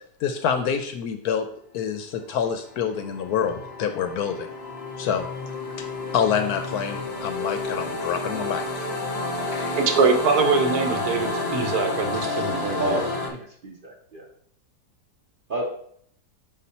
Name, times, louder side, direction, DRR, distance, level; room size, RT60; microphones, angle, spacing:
voice 1, 0.2-1.5 1.7-4.5 5.0-5.3 5.8-5.9 6.1-8.9 9.5-9.8, left 7 dB, 70° left, 1.0 m, -27 dB
sound 1, 2.6-13.3, left 2 dB, 45° left, 1.1 m, -30 dB
voice 2, 9.3-13.0, right 4 dB, 65° right, 1.3 m, -23 dB
voice 3, 12.8-14.2 15.5-15.6, right 1 dB, 45° right, 0.8 m, -30 dB
5.5 x 4.2 x 4.2 m
omnidirectional pair, 1.9 m